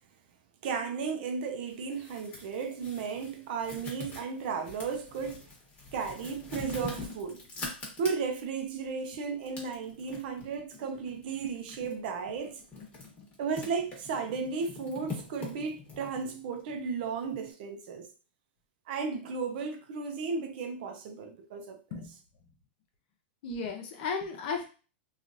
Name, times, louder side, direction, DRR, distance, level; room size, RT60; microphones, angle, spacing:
voice 1, 0.6-5.4 5.9-7.4 8.0-12.6 13.4-18.1 18.9-21.8, right 5 dB, 55° right, 0.6 m, -34 dB
sound 1, 1.7-8.5 9.0-17.5, left 3 dB, 25° left, 1.2 m, -44 dB
voice 2, 23.4-24.7, left 5 dB, 55° left, 0.8 m, -34 dB
2.9 x 2.4 x 2.6 m
hypercardioid pair, 135°, 6 cm